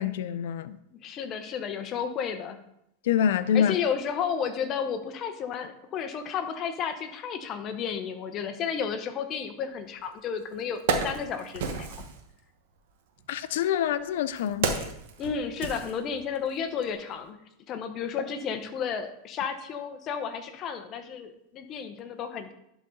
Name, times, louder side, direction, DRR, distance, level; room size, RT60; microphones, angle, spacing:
voice 1, 0.0-0.8 3.1-3.7 13.3-14.7, left 9 dB, 75° left, 0.4 m, -26 dB
voice 2, 0.9-2.6 3.5-12.1 14.7-14.9 15.2-17.4 17.7-22.5, left 7 dB, 35° left, 0.8 m, -32 dB
Wood, 10.0-10.1 10.6-12.2 13.2-16.5 16.8-17.0, right 5 dB, 70° right, 1.1 m, -32 dB
11.0 x 4.0 x 3.8 m
supercardioid pair, 140°, 0 cm